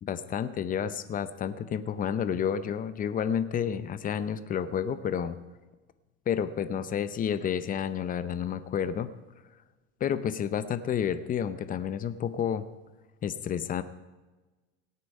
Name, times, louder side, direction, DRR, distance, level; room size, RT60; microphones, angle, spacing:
voice 1, 0.0-5.4 6.3-9.1 10.0-12.6 13.2-13.8, left 8 dB, 25° left, 13 dB, 0.7 m, -30 dB
17.5 x 8.5 x 5.4 m, 1.2 s
cardioid pair, 145°, 33 cm